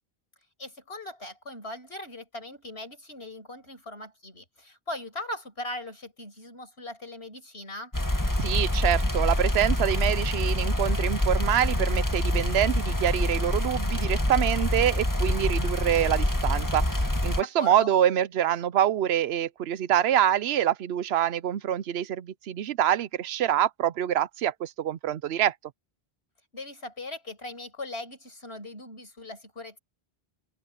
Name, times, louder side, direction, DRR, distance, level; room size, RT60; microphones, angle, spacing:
voice 1, 0.6-7.9 17.4-17.9 26.5-29.8, left 1 dB, 85° left, 5.8 m, -39 dB
sound 1, 7.9-17.4, left 1 dB, 20° left, 1.7 m, -26 dB
voice 2, 8.4-25.5, right 11 dB, 85° right, 0.9 m, -26 dB
open air
omnidirectional pair, 1.0 m